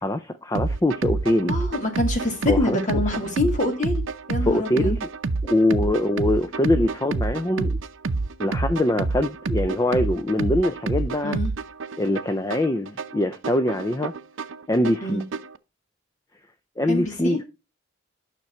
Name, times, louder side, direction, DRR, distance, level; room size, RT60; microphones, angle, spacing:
voice 1, 0.0-1.6 2.5-2.8 4.4-5.1 5.4-7.8 8.4-11.4 12.0-14.1 14.7-15.2 16.8-17.4, left 1 dB, 15° left, 0.4 m, -23 dB
sound 1, 0.5-15.6, right 3 dB, 70° right, 0.6 m, -28 dB
voice 2, 1.4-4.0 4.3-4.9 11.2-11.5 15.0-15.2 16.9-17.4, left 2 dB, 35° left, 2.1 m, -25 dB
9.6 x 5.9 x 4.3 m
head